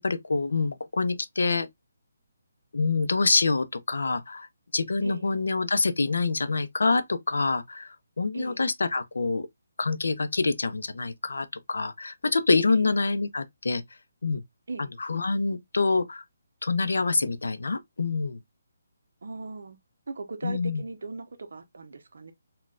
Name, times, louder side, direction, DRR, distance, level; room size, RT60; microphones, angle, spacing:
voice 1, 0.0-1.7 2.7-4.5 4.7-9.5 9.8-13.8 14.2-14.4 15.0-16.2 16.6-18.4 20.4-20.8, left 3 dB, 85° left, 0.5 m, -26 dB
voice 2, 8.3-8.6 12.7-12.9 14.7-14.9 19.2-19.8 20.1-22.3, right 3 dB, 65° right, 0.7 m, -38 dB
4.0 x 2.2 x 2.3 m
hypercardioid pair, 175°, 0 cm